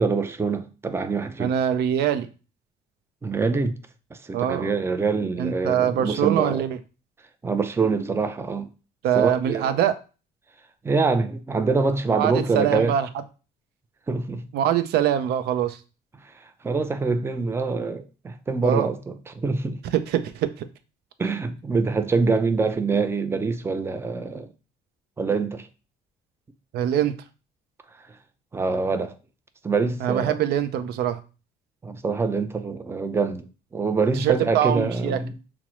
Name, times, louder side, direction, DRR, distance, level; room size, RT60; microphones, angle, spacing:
voice 1, 0.0-1.6 3.2-3.8 4.1-6.6 7.4-8.7 9.1-9.8 10.8-12.9 14.1-14.4 16.6-19.8 21.2-24.5 25.2-25.7 28.5-29.1 29.6-30.4 31.8-35.3, right 4 dB, 15° right, 0.4 m, -25 dB
voice 2, 1.4-2.3 4.3-4.7 5.4-6.8 9.0-10.0 12.1-13.1 14.5-15.8 18.6-18.9 19.9-20.7 26.7-27.1 30.0-31.2 34.2-35.2, right 10 dB, 75° right, 0.5 m, -23 dB
5.9 x 2.0 x 3.0 m
cardioid pair, 110°, 17 cm